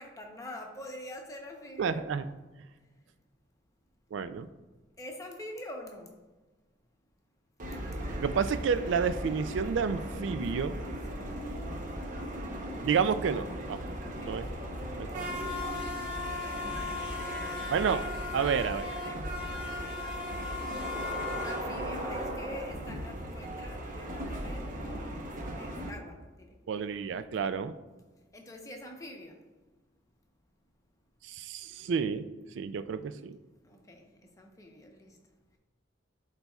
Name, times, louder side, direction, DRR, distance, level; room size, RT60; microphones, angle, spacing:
voice 1, 0.0-2.1 5.0-6.2 11.2-11.5 14.0-14.6 15.0-15.3 16.2-20.1 21.4-25.2 25.6-26.5 28.3-29.4 33.6-34.0 34.4-35.2, left 1 dB, 15° left, 0.8 m, -46 dB
voice 2, 1.8-2.3 4.1-4.5 8.2-10.8 12.8-13.9 14.2-14.5 14.9-15.3 17.7-18.1 18.3-18.9 26.7-27.7 31.2-32.3 32.5-33.4, right 6 dB, 70° right, 0.3 m, -30 dB
sound 1, 7.6-25.9, equal, 45° right, 0.9 m, -36 dB
12.0 x 4.1 x 2.3 m
head